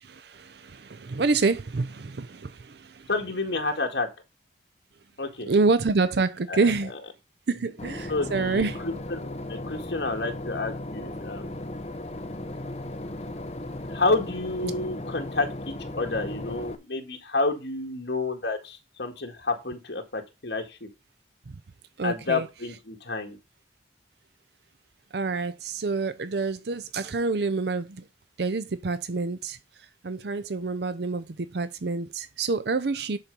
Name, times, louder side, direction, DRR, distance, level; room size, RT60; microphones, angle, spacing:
voice 1, 0.0-3.1 5.5-6.9 7.5-8.8 14.6-14.7 21.5-21.6 22.0-22.5 25.1-28.0 28.4-33.2, right 3 dB, 65° right, 0.6 m, -27 dB
voice 2, 3.1-4.1 5.2-5.5 6.5-6.7 8.1-11.6 13.9-20.9 22.0-23.4, left 3 dB, 70° left, 1.9 m, -30 dB
Boat Water vehicle / Engine, 7.8-16.8, left 1 dB, 35° left, 0.9 m, -36 dB
10.5 x 4.4 x 5.3 m
head